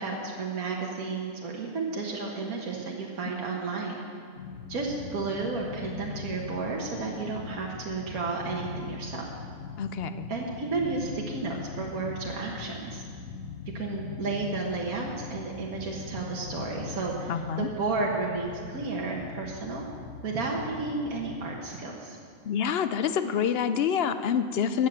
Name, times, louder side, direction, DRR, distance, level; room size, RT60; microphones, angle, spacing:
voice 1, 0.0-4.0 4.7-9.3 10.3-13.0 13.7-19.8 20.2-22.2, right 3 dB, 80° right, -2 dB, 1.7 m, -32 dB
sound 1, 4.3-21.6, left 6 dB, 85° left, 1.3 m, -41 dB
voice 2, 9.8-10.3 17.3-17.7 22.4-24.9, left 7 dB, 65° left, 11 dB, 0.6 m, -27 dB
13.0 x 8.3 x 7.4 m, 2.3 s
omnidirectional pair, 1.5 m